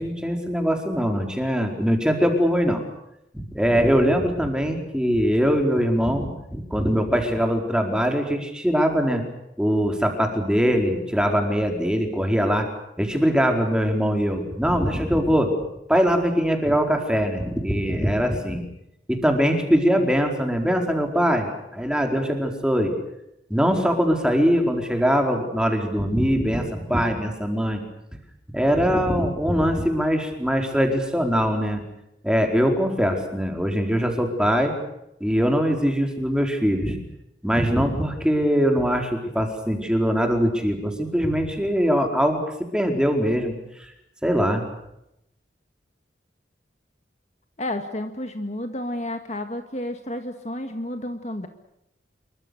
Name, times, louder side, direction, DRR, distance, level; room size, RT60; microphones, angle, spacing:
voice 1, 0.0-2.8 3.3-9.2 9.6-12.7 13.0-15.5 15.9-18.6 19.1-22.9 23.5-27.8 28.5-31.8 32.2-34.7 35.2-37.0 37.4-43.6 44.2-44.6, equal, 5° right, 3 dB, 4.5 m, -22 dB
voice 2, 47.6-51.5, left 1 dB, 35° left, 6 dB, 1.9 m, -31 dB
27.5 x 24.0 x 6.7 m, 0.84 s
head